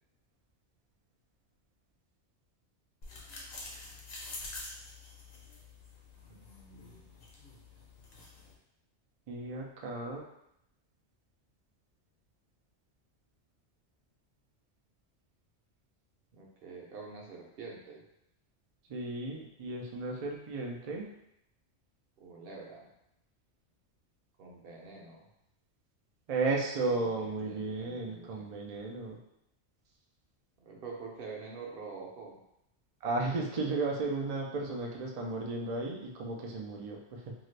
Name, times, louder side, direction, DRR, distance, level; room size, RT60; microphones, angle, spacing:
sound 1, 3.0-8.5, left 2 dB, 65° left, 1.0 m, -47 dB
voice 1, 6.3-7.2 16.3-18.0 22.2-22.9 24.4-25.3 27.0-28.5 30.6-32.4, right 4 dB, 60° right, -2 dB, 0.8 m, -46 dB
voice 2, 9.3-10.2 18.9-21.1 26.3-29.2 33.0-37.3, right 3 dB, 75° right, -1 dB, 0.3 m, -34 dB
2.7 x 2.4 x 3.2 m, 0.80 s
omnidirectional pair, 1.2 m